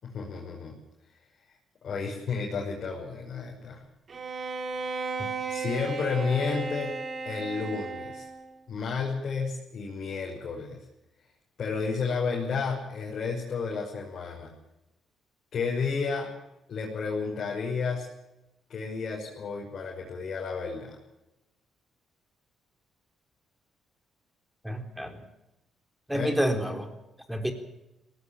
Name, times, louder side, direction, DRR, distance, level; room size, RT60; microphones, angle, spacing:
voice 1, 0.0-0.8 1.8-3.8 5.5-7.0 7.2-8.3 8.7-10.8 11.6-14.5 15.5-16.3 16.7-18.1 18.7-21.0 26.1-26.3, left 5 dB, 55° left, -3 dB, 6.0 m, -31 dB
Bowed string instrument, 4.1-8.5, right 4 dB, 45° right, 4.1 m, -35 dB
voice 2, 24.6-25.2 26.1-26.9 27.3-27.5, equal, 5° right, 6 dB, 4.0 m, -29 dB
19.5 x 18.0 x 7.4 m, 0.93 s
cardioid pair, 90°, 0 cm